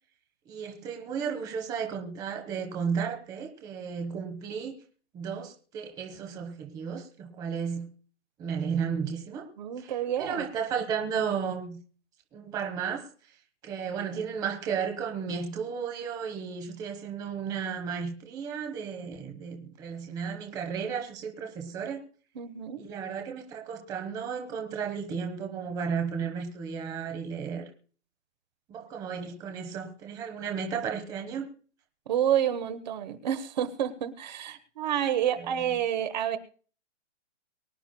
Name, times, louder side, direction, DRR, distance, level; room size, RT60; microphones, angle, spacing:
voice 1, 0.5-4.8 5.1-7.9 8.4-9.5 9.8-9.9 10.2-11.8 12.3-13.1 13.6-22.0 22.8-27.7 28.7-31.5 35.4-35.5, right 6 dB, 10° right, 1.0 m, -34 dB
voice 2, 9.6-10.5 22.3-22.8 32.1-36.4, right 10 dB, 40° right, 1.2 m, -29 dB
23.5 x 10.0 x 2.2 m
hypercardioid pair, 160°, 35 cm